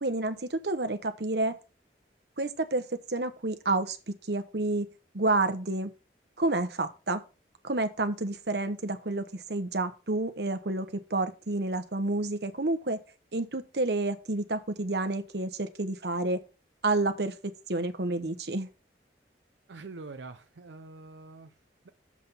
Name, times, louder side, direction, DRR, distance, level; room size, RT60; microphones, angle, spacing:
voice 1, 0.0-1.6 2.4-4.0 4.3-4.9 5.1-5.9 6.4-7.2 7.6-13.0 13.3-16.4 16.8-17.3 17.7-18.7, right 2 dB, 70° right, 1.1 m, -29 dB
voice 2, 19.7-21.5 21.8-21.9, right 3 dB, 90° right, 0.6 m, -45 dB
7.3 x 6.1 x 5.5 m
head